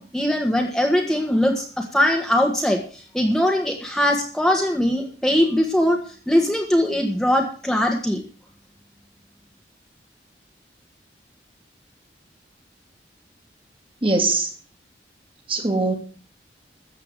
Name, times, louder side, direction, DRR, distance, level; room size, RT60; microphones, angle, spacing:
voice 1, 0.0-6.0 6.3-8.2, left 1 dB, ahead, 1 dB, 1.6 m, -21 dB
voice 2, 14.0-14.5 15.5-15.9, right 3 dB, 30° right, 4 dB, 2.6 m, -21 dB
14.0 x 8.2 x 6.7 m, 0.42 s
head